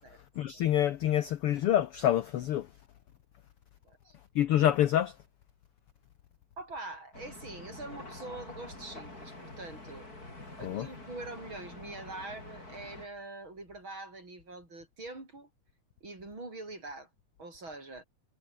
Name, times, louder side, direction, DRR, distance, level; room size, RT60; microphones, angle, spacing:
voice 1, 0.4-2.7 4.3-5.2 10.6-10.9, left 11 dB, 75° left, 1.3 m, -27 dB
voice 2, 3.8-4.2 6.6-10.1 10.6-15.5 16.0-17.1 17.4-18.0, right 2 dB, 35° right, 7.7 m, -44 dB
sound 1, 7.1-13.1, left 2 dB, 25° left, 7.1 m, -47 dB
omnidirectional pair, 3.8 m